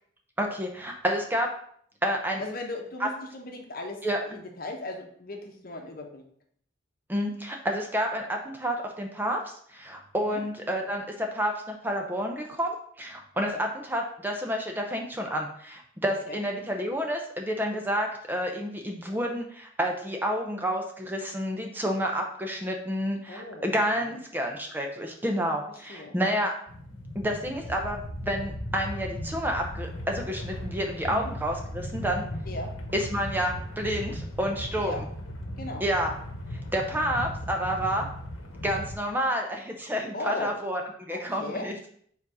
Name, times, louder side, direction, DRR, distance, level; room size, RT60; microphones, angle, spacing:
voice 1, 0.4-1.5 2.0-2.4 3.0-3.1 4.0-4.2 7.1-26.5 27.1-32.2 32.9-35.1 35.8-36.1 36.5-38.1 38.6-41.7, equal, 10° right, 2 dB, 0.6 m, -29 dB
voice 2, 2.4-4.0 4.3-6.2 10.2-10.4 13.5-13.6 16.3-16.4 23.3-23.7 24.0-24.2 25.9-26.2 31.1-31.3 32.4-32.7 34.8-35.0 35.6-35.8 40.1-40.5 41.1-41.7, left 1 dB, 45° left, 3 dB, 1.0 m, -37 dB
sound 1, 26.7-38.9, equal, 90° left, 1.1 m, -37 dB
4.9 x 4.0 x 4.8 m, 0.62 s
head